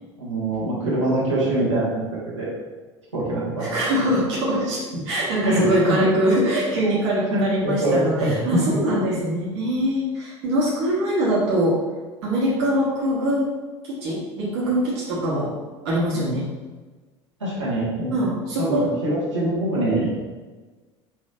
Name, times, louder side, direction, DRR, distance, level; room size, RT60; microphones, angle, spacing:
voice 1, 0.2-2.5 3.1-3.7 5.4-6.0 7.3-8.3 8.7-8.8 16.1-16.2 17.4-18.1 18.6-20.1, right 1 dB, 90° right, -9 dB, 1.5 m, -24 dB
voice 2, 3.6-11.8 12.2-13.5 13.8-15.5 15.8-16.5 18.1-18.9, equal, 65° right, -6 dB, 1.3 m, -23 dB
6.0 x 3.1 x 2.5 m, 1.3 s
figure-of-eight pair, 70°, 15 cm